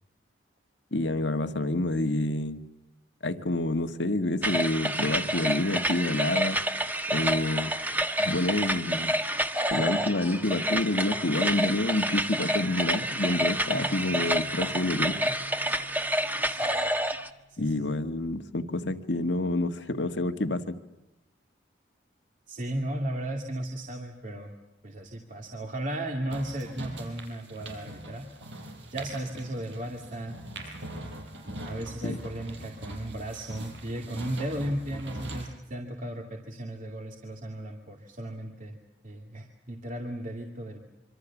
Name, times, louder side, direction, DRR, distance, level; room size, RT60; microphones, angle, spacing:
voice 1, 0.9-2.6 3.2-6.6 7.1-7.7 8.2-9.1 9.7-15.2 17.6-20.8 32.0-32.2, left 2 dB, 75° left, 8 dB, 1.7 m, -28 dB
sound 1, 4.4-17.3, right 1 dB, 10° right, 1.4 m, -28 dB
sound 2, 13.7-17.9, right 1 dB, 65° right, 3.7 m, -46 dB
voice 2, 16.4-16.8 17.5-17.9 22.5-24.5 24.8-28.3 28.9-30.4 31.6-38.8 39.0-40.9, right 1 dB, 45° right, 2 dB, 2.5 m, -35 dB
sound 3, 26.3-35.5, right 1 dB, 85° right, 5.3 m, -42 dB
26.5 x 25.0 x 7.2 m, 0.98 s
head